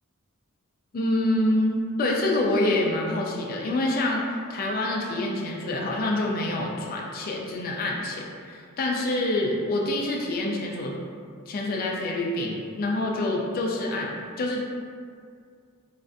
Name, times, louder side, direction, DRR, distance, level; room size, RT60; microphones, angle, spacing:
voice 1, 0.9-10.9 11.5-14.6, left 1 dB, 40° left, -1 dB, 0.3 m, -26 dB
3.2 x 2.4 x 2.5 m, 2.2 s
head